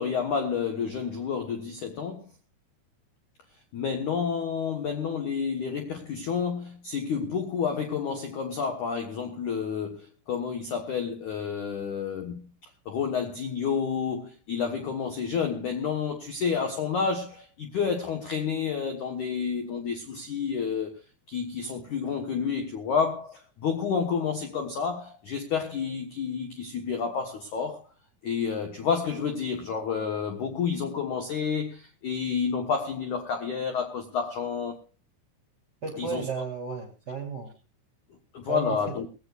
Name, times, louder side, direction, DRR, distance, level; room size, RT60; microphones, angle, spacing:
voice 1, 0.0-2.2 3.7-12.5 12.9-21.0 21.3-27.8 28.2-34.8 36.0-36.3 38.3-39.1, left 6 dB, 70° left, 1.8 m, -30 dB
voice 2, 35.8-37.5 38.5-39.0, right 5 dB, 25° right, 3.3 m, -33 dB
20.5 x 16.5 x 2.5 m
omnidirectional pair, 5.7 m